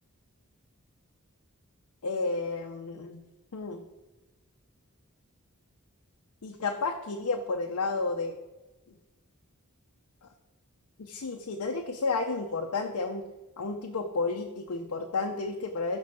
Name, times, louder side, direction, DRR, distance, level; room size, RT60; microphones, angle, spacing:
voice 1, 2.0-3.2 3.5-3.8 6.4-8.3 10.2-10.3 11.0-13.2 13.6-16.0, left 3 dB, 75° left, 3 dB, 0.6 m, -31 dB
6.2 x 6.1 x 4.3 m, 1.1 s
head